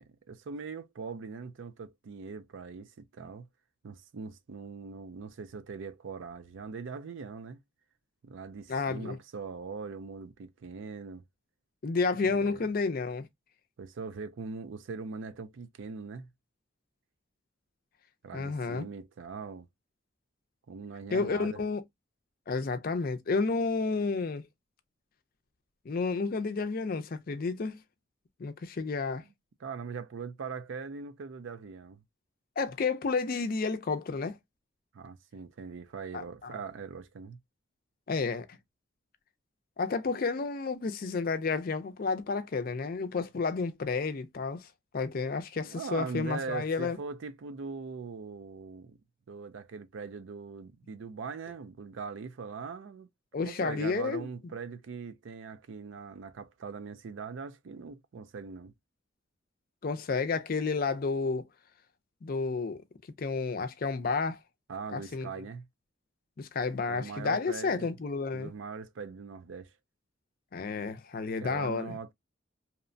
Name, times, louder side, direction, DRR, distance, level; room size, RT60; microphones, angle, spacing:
voice 1, 0.0-3.5 3.8-7.6 8.2-11.2 12.3-12.7 13.8-16.3 18.2-19.7 20.7-21.6 29.6-32.0 34.9-37.4 45.6-49.0 49.3-53.1 53.4-58.7 64.7-65.7 66.9-67.9 68.3-69.7 71.4-72.1, right 5 dB, 75° right, 0.4 m, -41 dB
voice 2, 8.7-9.2 11.8-13.3 18.3-18.9 21.1-21.8 22.5-24.4 25.9-27.8 28.4-29.2 32.6-34.4 36.1-36.2 38.1-38.5 39.8-44.7 44.9-47.0 53.3-54.3 59.8-61.5 62.2-62.8 63.2-64.4 64.9-65.3 66.4-68.5 70.5-72.0, left 4 dB, 45° left, 0.4 m, -31 dB
2.8 x 2.1 x 2.5 m
head